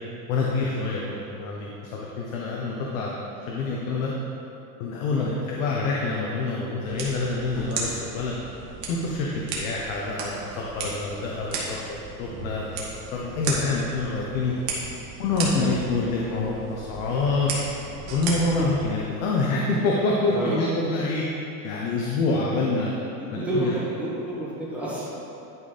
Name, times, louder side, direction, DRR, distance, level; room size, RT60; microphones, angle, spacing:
voice 1, 0.3-1.7 2.0-3.2 3.5-4.1 4.8-8.4 8.9-9.3 9.5-12.7 12.9-14.5 15.2-17.5 18.1-21.2 21.6-22.9 23.3-23.8, left 3 dB, 65° left, -3 dB, 1.1 m, -26 dB
sound 1, 6.9-18.9, right 3 dB, 45° right, 1.7 m, -35 dB
voice 2, 23.1-25.1, right 2 dB, 5° right, -9 dB, 1.5 m, -30 dB
11.0 x 4.3 x 5.1 m, 2.9 s
cardioid pair, 180°, 45 cm